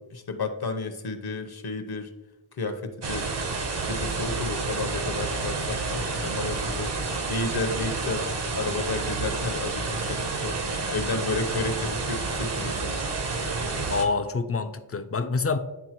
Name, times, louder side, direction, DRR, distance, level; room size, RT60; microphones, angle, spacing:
voice 1, 0.0-2.1 2.6-3.3 3.8-6.9 7.3-10.6 10.9-13.0, left 3 dB, 50° left, 7 dB, 0.9 m, -32 dB
sound 1, 3.0-14.1, right 3 dB, 55° right, 1.1 m, -29 dB
voice 2, 13.9-15.6, left 4 dB, 30° left, 9 dB, 0.6 m, -26 dB
10.0 x 3.6 x 3.0 m, 1.1 s
cardioid pair, 45°, 48 cm